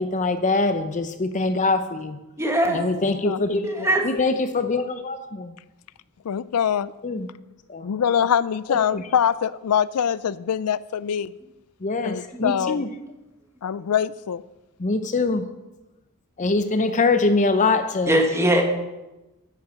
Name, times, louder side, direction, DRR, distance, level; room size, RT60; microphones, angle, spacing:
voice 1, 0.0-2.2 2.7-3.7 4.0-5.5 7.0-7.3 7.7-7.9 8.7-9.0 11.8-12.9 14.8-15.5 16.4-18.2, left 3 dB, 35° left, 9 dB, 0.6 m, -23 dB
voice 2, 2.4-2.8 3.6-4.0 12.3-12.4 18.1-18.6, right 1 dB, 15° right, 3 dB, 1.7 m, -20 dB
voice 3, 3.0-4.0 6.2-6.9 7.8-11.3 12.0-12.9 13.6-14.4, left 8 dB, 90° left, 18 dB, 0.4 m, -24 dB
9.9 x 9.2 x 7.3 m, 1.0 s
head